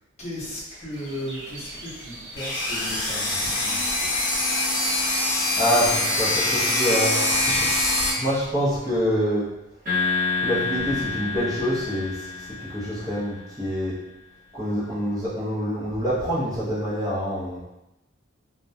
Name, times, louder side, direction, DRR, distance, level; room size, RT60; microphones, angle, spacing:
voice 1, 0.2-4.1 15.8-16.0, equal, 35° left, -7 dB, 0.7 m, -36 dB
sound 1, 0.9-8.3, right 1 dB, 65° right, 0.6 m, -40 dB
sound 2, 2.4-8.1, left 2 dB, 75° left, 0.5 m, -24 dB
voice 2, 5.6-9.5 10.4-14.0 14.5-17.6, equal, 20° right, -9 dB, 0.6 m, -26 dB
sound 3, 9.9-13.3, left 4 dB, 45° right, 0.9 m, -28 dB
2.3 x 2.1 x 2.6 m, 0.93 s
head